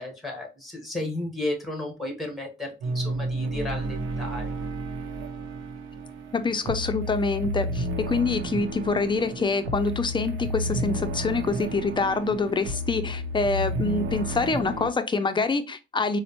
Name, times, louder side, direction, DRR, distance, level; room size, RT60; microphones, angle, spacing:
voice 1, 0.0-4.5, left 1 dB, ahead, 2 dB, 1.3 m, -33 dB
sound 1, 2.8-14.9, equal, 85° right, 0.7 m, -31 dB
voice 2, 6.3-16.2, left 3 dB, 25° left, 9 dB, 0.5 m, -26 dB
4.0 x 2.1 x 2.9 m, 0.29 s
cardioid pair, 90°, 20 cm